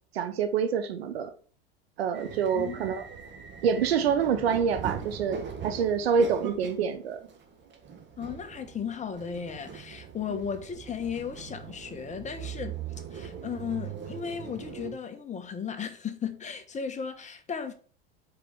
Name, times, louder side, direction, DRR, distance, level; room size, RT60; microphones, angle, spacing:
voice 1, 0.1-1.3 2.0-3.0 3.6-7.2 10.3-10.4, right 6 dB, 90° right, 1.1 m, -26 dB
sound 1, 2.1-14.9, right 7 dB, 35° right, 1.7 m, -41 dB
voice 2, 2.5-2.9 8.2-12.7 13.1-17.7, left 7 dB, 25° left, 1.2 m, -35 dB
5.0 x 4.8 x 6.3 m
hypercardioid pair, 100°, 30 cm